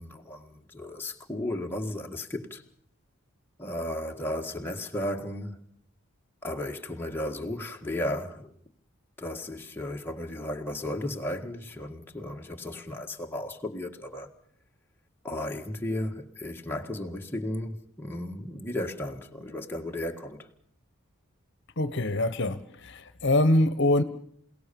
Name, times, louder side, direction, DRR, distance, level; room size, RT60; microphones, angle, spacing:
voice 1, 0.0-2.6 3.6-5.6 6.4-8.5 9.2-14.3 15.2-20.5, left 1 dB, 10° left, 1.8 m, -34 dB
voice 2, 21.8-22.6 22.8-24.0, left 1 dB, 55° left, 1.2 m, -24 dB
28.0 x 18.0 x 7.0 m
head